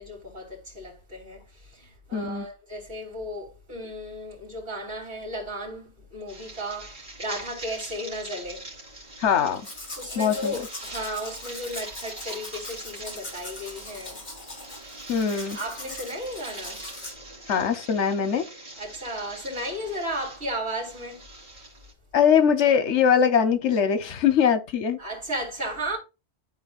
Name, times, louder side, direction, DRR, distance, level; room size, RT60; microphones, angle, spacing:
voice 1, 0.0-8.7 10.0-14.2 14.8-15.1 15.5-16.8 18.8-21.3 25.0-26.0, equal, 70° right, 3.5 m, -34 dB
voice 2, 2.1-2.5 9.2-9.6 10.2-10.5 15.1-15.6 17.5-18.5 22.1-25.0, left 7 dB, 85° left, 1.2 m, -22 dB
sound 1, 6.3-21.9, right 2 dB, 45° right, 2.8 m, -43 dB
Domestic sounds home sounds, 9.5-17.1, left 2 dB, 40° left, 1.9 m, -41 dB
12.5 x 4.2 x 2.4 m
omnidirectional pair, 1.2 m